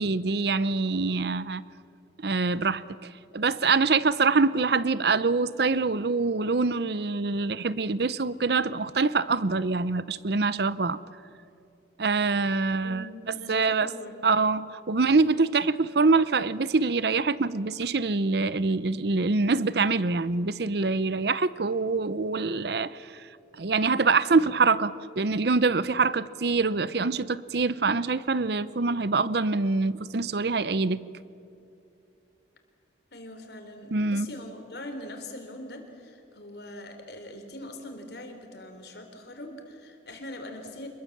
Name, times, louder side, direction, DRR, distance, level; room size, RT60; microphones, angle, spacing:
voice 1, 0.0-1.6 2.2-2.8 3.3-11.0 12.0-13.1 13.5-13.9 14.2-22.9 23.6-31.0 33.9-34.3, right 4 dB, 60° right, 0.7 m, -25 dB
voice 2, 12.8-14.2 33.1-40.9, left 1 dB, 60° left, 3.7 m, -42 dB
26.5 x 22.0 x 7.4 m
head